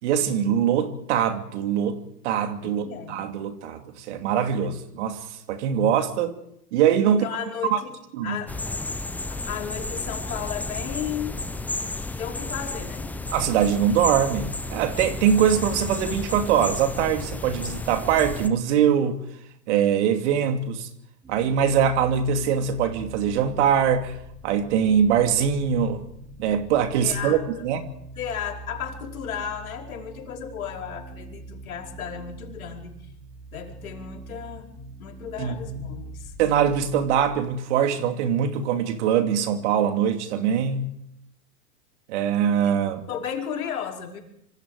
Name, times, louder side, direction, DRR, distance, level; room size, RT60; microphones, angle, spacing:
voice 1, 0.0-2.0 2.2-6.4 6.7-7.2 7.7-7.8 8.2-8.4 13.3-19.2 19.7-20.9 21.3-24.1 24.4-26.0 26.4-27.4 27.6-27.9 35.4-35.8 36.4-40.9 42.1-43.1, right 8 dB, 45° right, 2.6 m, -23 dB
voice 2, 2.6-3.2 7.0-7.9 8.2-8.5 9.3-11.4 12.2-13.1 27.0-27.7 28.2-32.9 33.5-34.7 35.0-36.3 43.1-44.2, left 8 dB, 60° left, 5.2 m, -34 dB
sound 1, 8.5-18.5, left 2 dB, 5° left, 0.9 m, -32 dB
Content warning, 21.2-37.4, right 1 dB, 15° right, 5.9 m, -43 dB
26.0 x 25.5 x 5.0 m
figure-of-eight pair, 110°, 47 cm